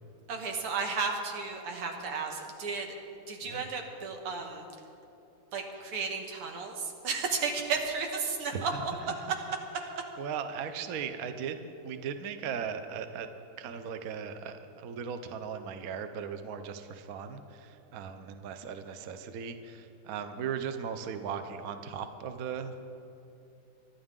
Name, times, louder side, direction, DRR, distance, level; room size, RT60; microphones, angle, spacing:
voice 1, 0.3-2.9 3.3-4.7 5.5-8.7, right 5 dB, 90° right, 3 dB, 2.3 m, -33 dB
voice 2, 8.5-8.8 9.2-9.3 10.0-11.6 11.8-13.3 13.6-22.7, right 7 dB, 60° right, 8 dB, 0.9 m, -38 dB
24.5 x 11.5 x 3.7 m, 2.8 s
omnidirectional pair, 2.4 m